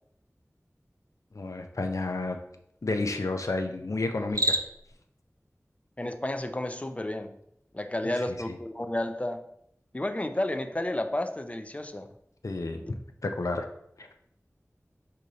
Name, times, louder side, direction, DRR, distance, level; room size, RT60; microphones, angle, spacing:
voice 1, 1.3-2.4 2.8-4.6 8.3-8.6 12.4-13.6 14.0-14.1, left 2 dB, 85° left, 5 dB, 0.5 m, -31 dB
Cricket, 4.2-5.0, right 1 dB, 85° right, 0.4 m, -28 dB
voice 2, 6.0-7.3 7.7-9.4 9.9-12.1, left 1 dB, 25° left, 8 dB, 0.4 m, -31 dB
4.9 x 2.8 x 3.8 m, 0.75 s
wide cardioid pair, 45°, 5 cm